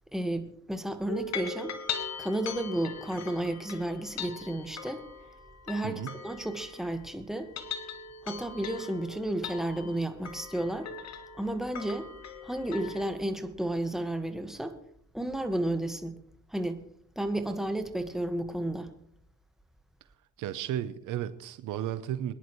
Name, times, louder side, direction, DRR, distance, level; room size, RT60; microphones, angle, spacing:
voice 1, 0.1-1.7 2.2-5.0 5.7-7.5 8.2-10.9 11.4-12.1 12.4-14.8 15.1-16.2 16.5-16.8 17.2-18.9, right 1 dB, ahead, 1.6 m, -32 dB
sound 1, 1.1-7.0 7.4-13.1, left 5 dB, 60° left, 1.6 m, -40 dB
voice 2, 5.8-6.1 20.4-22.3, right 11 dB, 85° right, 0.9 m, -34 dB
23.5 x 10.5 x 3.2 m
cardioid pair, 90°, 30 cm